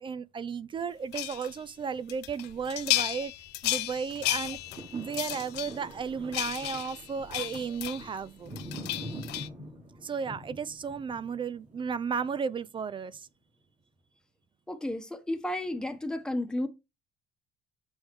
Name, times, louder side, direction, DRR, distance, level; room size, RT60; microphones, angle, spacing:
voice 1, 0.0-3.3 3.6-4.6 4.9-8.5 10.0-13.3, right 6 dB, 30° right, 0.4 m, -34 dB
sound 1, 1.1-1.6 2.1-8.2 8.5-9.5, left 17 dB, 85° left, 0.5 m, -33 dB
sound 2, 4.3-12.6 13.1-13.2, right 1 dB, 45° right, 3.2 m, -45 dB
voice 2, 14.7-16.7, left 1 dB, 5° left, 1.1 m, -32 dB
6.3 x 4.8 x 3.1 m
cardioid pair, 110°, 17 cm